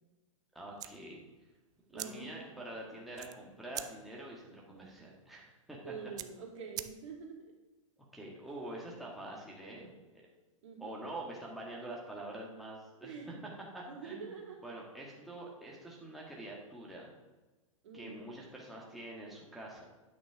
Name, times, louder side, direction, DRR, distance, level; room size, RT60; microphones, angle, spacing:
voice 1, 0.5-1.2 1.9-5.9 8.1-10.3 10.8-13.1 13.7-14.4 14.6-17.1 17.9-19.8, right 1 dB, ahead, -4 dB, 1.7 m, -46 dB
sound 1, 0.7-7.4, right 13 dB, 20° right, 0.4 m, -48 dB
voice 2, 1.9-2.3 5.8-7.4 10.6-10.9 13.0-13.4 13.9-14.6 15.2-15.3 17.8-18.3, right 5 dB, 65° right, 0 dB, 2.6 m, -46 dB
9.4 x 6.1 x 4.9 m, 1.2 s
hypercardioid pair, 135°, 18 cm